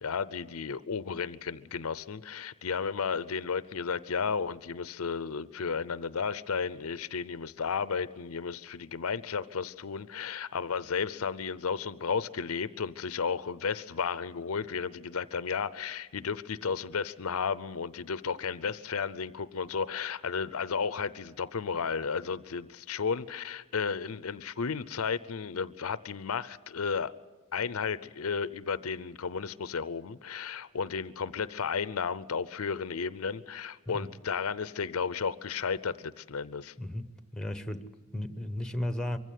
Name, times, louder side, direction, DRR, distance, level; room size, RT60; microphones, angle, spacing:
voice 1, 0.0-27.1 27.5-36.7, left 5 dB, 75° left, 0.6 m, -33 dB
voice 2, 36.8-39.2, left 1 dB, 5° left, 0.9 m, -35 dB
23.5 x 15.5 x 9.4 m
head